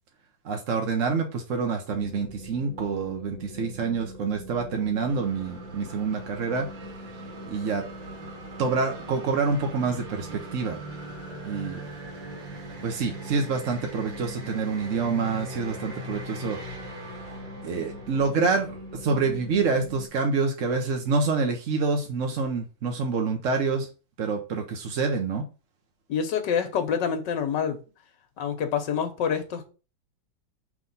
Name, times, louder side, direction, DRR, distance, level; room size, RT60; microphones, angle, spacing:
voice 1, 0.4-6.7 7.4-7.8 8.6-10.8 11.4-11.8 12.8-16.6 17.6-23.9 24.2-25.5, right 4 dB, 50° right, 1.1 m, -27 dB
sound 1, 1.9-20.1, equal, 50° left, 1.6 m, -43 dB
sound 2, 5.0-19.9, right 2 dB, 80° right, 2.1 m, -42 dB
voice 2, 26.1-27.8 28.4-29.7, left 7 dB, 75° left, 1.6 m, -27 dB
5.9 x 3.3 x 5.3 m
omnidirectional pair, 2.0 m